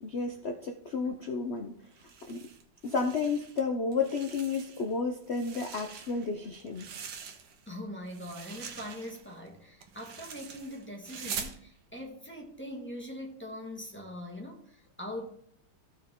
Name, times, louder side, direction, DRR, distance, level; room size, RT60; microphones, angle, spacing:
voice 1, 0.0-1.8 2.3-2.5 2.8-6.9, left 4 dB, 55° left, 4 dB, 0.7 m, -32 dB
sound 1, 1.9-3.6 3.9-4.9 5.2-7.7 8.1-11.6, right 7 dB, 70° right, 1.7 m, -44 dB
voice 2, 7.7-15.3, left 1 dB, 5° left, 0 dB, 1.5 m, -42 dB
14.0 x 6.1 x 3.7 m, 0.67 s
omnidirectional pair, 2.1 m